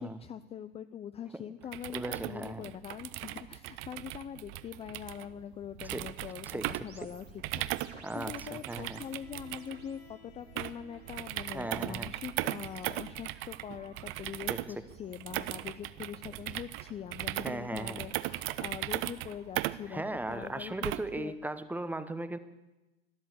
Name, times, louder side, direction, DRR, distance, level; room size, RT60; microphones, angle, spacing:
voice 1, 0.0-20.0 20.3-21.3, left 9 dB, 20° left, 12 dB, 0.5 m, -43 dB
sound 1, 1.6-21.2, right 17 dB, 40° right, 0.7 m, -38 dB
voice 2, 1.9-2.7 5.8-6.1 6.5-6.7 8.0-9.0 11.5-12.1 14.5-14.8 17.4-18.0 19.9-22.4, right 2 dB, 5° right, 12 dB, 0.9 m, -37 dB
sound 2, 6.9-10.1 10.4-11.0 12.0-16.1, right 4 dB, 75° right, 2.5 m, -59 dB
Bowed string instrument, 8.6-13.8, left 4 dB, 65° left, 2.6 m, -60 dB
13.0 x 13.0 x 8.1 m, 1.0 s
figure-of-eight pair, 80°, 33 cm